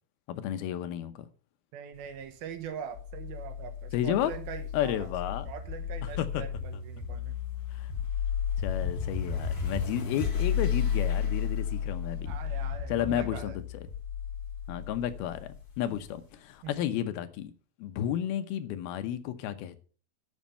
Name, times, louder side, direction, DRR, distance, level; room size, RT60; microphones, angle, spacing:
voice 1, 0.3-1.3 3.9-4.3 4.7-5.5 6.0-6.4 7.7-7.9 8.6-12.3 12.9-13.9 14.7-17.5 17.8-19.8, left 11 dB, 80° left, 2.7 m, -32 dB
voice 2, 1.7-5.1 5.5-7.4 12.3-13.6 16.6-16.8, right 8 dB, 75° right, 2.9 m, -42 dB
sound 1, 2.9-16.1, left 7 dB, 35° left, 2.4 m, -33 dB
13.0 x 6.3 x 5.6 m
omnidirectional pair, 4.5 m